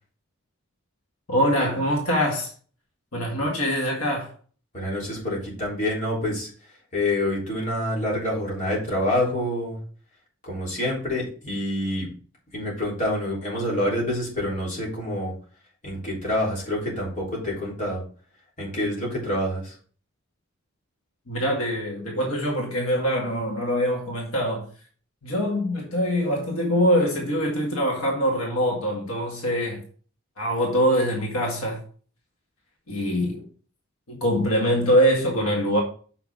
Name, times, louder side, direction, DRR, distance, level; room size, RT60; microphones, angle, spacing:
voice 1, 1.3-2.5 3.1-4.3 21.3-24.7 25.2-29.8 30.4-31.8 32.9-33.4 34.1-35.8, equal, 80° left, 2.0 m, -23 dB
voice 2, 4.7-6.5 6.9-9.8 10.4-12.1 12.5-15.3 15.8-18.0 18.6-19.7, left 1 dB, 35° left, 3.6 m, -27 dB
6.9 x 6.0 x 3.6 m
head